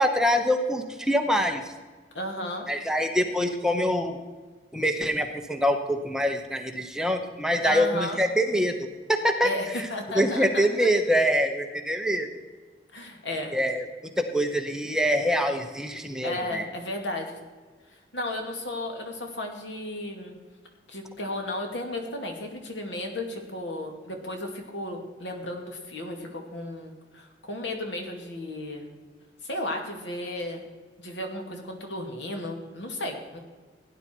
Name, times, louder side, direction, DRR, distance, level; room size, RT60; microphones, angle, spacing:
voice 1, 0.0-1.6 2.7-4.2 4.7-8.7 9.1-9.5 10.1-12.3 13.5-13.8 14.2-16.6, equal, 5° right, 4 dB, 1.0 m, -24 dB
voice 2, 2.1-2.7 7.6-8.2 9.4-10.9 12.9-13.6 16.2-17.4 18.1-20.4 20.9-28.8 29.4-30.6 31.0-33.4, left 1 dB, 85° left, 3 dB, 2.5 m, -34 dB
16.5 x 10.0 x 4.6 m, 1.4 s
head